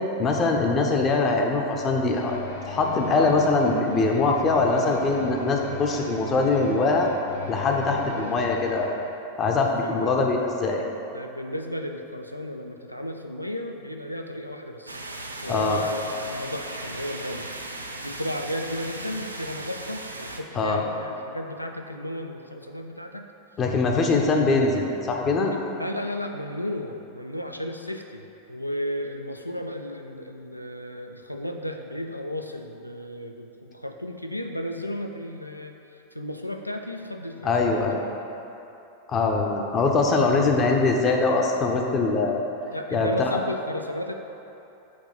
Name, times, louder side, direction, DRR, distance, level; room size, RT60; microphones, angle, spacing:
voice 1, 0.2-2.4 2.7-7.1 7.5-9.0 9.4-10.8 15.5-15.8 20.5-20.8 23.6-25.5 37.4-38.0 39.1-42.4 42.9-43.3, left 3 dB, 30° left, 1 dB, 0.7 m, -22 dB
sound 1, 2.1-8.9, left 3 dB, 65° left, 0.7 m, -37 dB
voice 2, 9.8-10.3 10.8-15.0 15.4-17.5 18.0-23.3 25.5-38.3 42.7-44.1, left 1 dB, 90° left, 4 dB, 0.4 m, -34 dB
sound 2, 14.9-20.4, right 2 dB, 80° right, 0.4 m, -37 dB
6.1 x 2.9 x 5.6 m, 3.0 s
figure-of-eight pair, 90°, 0 cm